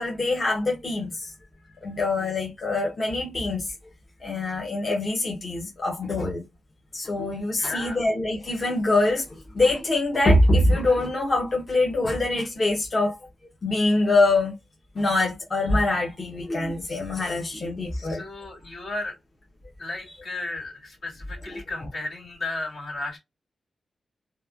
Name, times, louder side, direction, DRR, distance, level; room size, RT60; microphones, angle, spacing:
voice 1, 0.0-1.3 1.8-3.7 4.2-6.4 6.9-13.2 13.6-14.5 14.9-18.2 21.5-21.6, left 2 dB, 30° left, 0.6 m, -24 dB
voice 2, 7.6-8.0 17.9-19.1 19.8-23.2, left 2 dB, 70° left, 1.8 m, -34 dB
2.9 x 2.1 x 2.2 m
wide cardioid pair, 170°, 0 cm